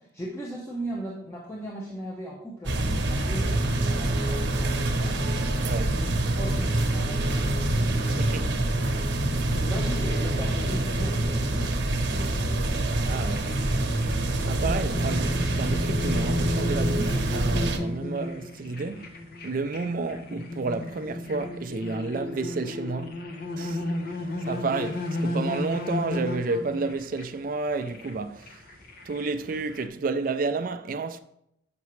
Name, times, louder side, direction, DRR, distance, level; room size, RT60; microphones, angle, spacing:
voice 1, 0.0-5.3 5.8-8.6 9.3-12.9, right 1 dB, 15° left, 0.9 m, -39 dB
sound 1, 2.6-17.8, right 1 dB, 75° right, 0.8 m, -26 dB
voice 2, 5.6-6.0 8.2-8.5 13.0-13.8 14.5-19.2 19.4-23.2 23.6-23.8 24.5-28.6 29.1-31.2, right 3 dB, 50° right, 0.4 m, -31 dB
sound 2, 13.2-29.9, left 1 dB, 55° left, 0.9 m, -34 dB
8.1 x 5.9 x 3.1 m
head